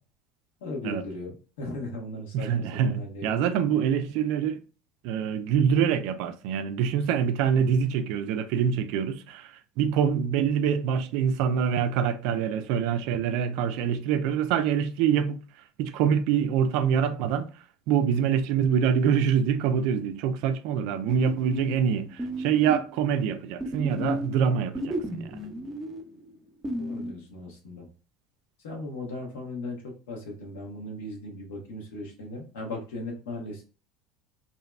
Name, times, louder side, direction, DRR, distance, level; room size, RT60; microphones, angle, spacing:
voice 1, 0.6-3.4 26.8-27.9 28.6-33.6, left 1 dB, 80° left, 1.0 m, -37 dB
voice 2, 2.3-4.6 5.0-15.4 15.8-17.5 17.9-25.4, right 8 dB, 65° right, 0.3 m, -25 dB
sound 1, 21.1-23.3 23.6-27.1, equal, 20° right, 0.7 m, -34 dB
2.7 x 2.2 x 2.3 m
hypercardioid pair, 80°, 0 cm